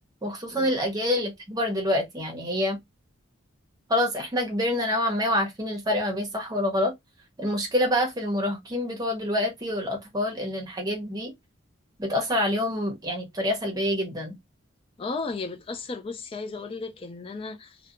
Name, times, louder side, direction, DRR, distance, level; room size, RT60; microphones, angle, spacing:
voice 1, 0.2-2.8 3.9-6.9 7.4-11.3 12.0-14.3, left 1 dB, 20° right, 0.7 m, -26 dB
voice 2, 15.0-17.9, left 3 dB, 25° left, 0.3 m, -35 dB
2.7 x 2.1 x 2.4 m
head